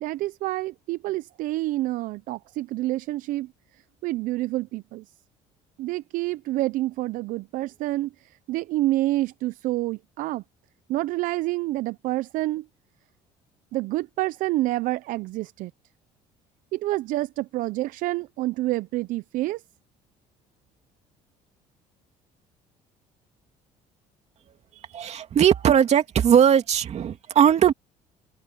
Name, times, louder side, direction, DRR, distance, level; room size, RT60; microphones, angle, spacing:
voice 1, 0.0-3.5 4.0-5.0 5.8-8.1 8.5-10.4 10.9-12.6 13.7-15.7 16.7-19.6, right 17 dB, 70° right, 0.5 m, -28 dB
voice 2, 24.9-27.7, right 9 dB, 50° right, 2.5 m, -19 dB
supercardioid pair, 95°, 14 cm